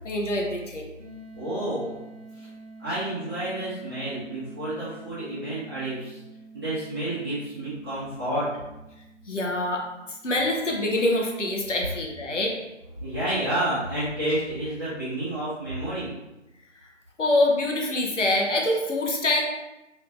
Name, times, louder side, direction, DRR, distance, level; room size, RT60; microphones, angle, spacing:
voice 1, 0.0-0.9 9.3-12.6 17.2-19.4, left 1 dB, 75° left, 0 dB, 0.8 m, -25 dB
sound 1, 1.0-11.7, right 3 dB, 90° right, 1.1 m, -48 dB
voice 2, 1.3-1.9 2.8-6.2 6.5-8.5 13.0-16.1, right 1 dB, 20° right, -16 dB, 1.3 m, -30 dB
3.2 x 3.1 x 2.5 m, 0.98 s
figure-of-eight pair, 175°, 37 cm